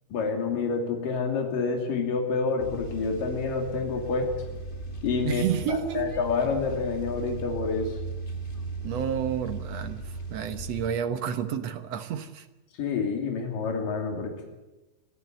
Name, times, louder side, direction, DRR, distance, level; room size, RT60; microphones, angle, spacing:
voice 1, 0.1-4.3 5.0-5.4 5.7-8.0 12.8-14.3, left 4 dB, 70° left, 2 dB, 4.5 m, -28 dB
sound 1, 2.6-10.9, right 3 dB, 20° left, 1.5 m, -37 dB
voice 2, 5.2-6.1 8.8-12.5, right 8 dB, 60° right, 8 dB, 1.9 m, -30 dB
24.5 x 15.0 x 9.2 m, 1.1 s
omnidirectional pair, 4.0 m